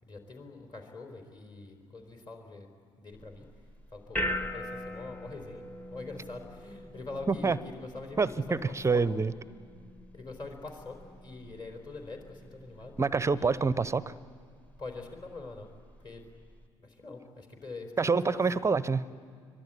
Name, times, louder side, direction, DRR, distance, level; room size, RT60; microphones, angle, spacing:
voice 1, 0.0-2.7 3.0-3.5 3.9-5.6 5.9-8.6 8.9-9.0 10.1-11.0 11.2-12.9 13.3-13.8 14.8-15.7 16.0-16.2 17.0-18.5, left 3 dB, 30° left, 3 dB, 4.2 m, -44 dB
sound 1, 3.1-16.7, left 1 dB, 10° left, 1.3 m, -42 dB
voice 2, 8.2-9.3 13.0-14.1 18.0-19.0, right 4 dB, 20° right, 17 dB, 0.8 m, -26 dB
25.0 x 24.0 x 10.0 m, 2.1 s
figure-of-eight pair, 55°, 15 cm